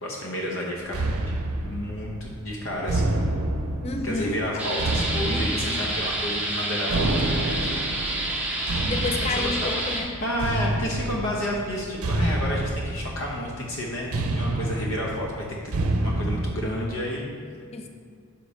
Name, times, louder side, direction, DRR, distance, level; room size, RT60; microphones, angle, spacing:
voice 1, 0.0-1.3 1.6-3.2 4.0-7.7 9.2-9.8 10.2-15.5 16.0-17.3, equal, 60° left, -2 dB, 0.8 m, -31 dB
sound 1, 0.9-16.5, right 1 dB, 85° right, 0.6 m, -29 dB
voice 2, 3.8-4.4 5.3-5.8 8.9-10.1 17.7-17.9, left 3 dB, 30° left, 5 dB, 0.4 m, -31 dB
sound 2, 4.6-10.0, right 1 dB, 5° right, 0.8 m, -29 dB
5.7 x 4.1 x 4.9 m, 2.2 s
head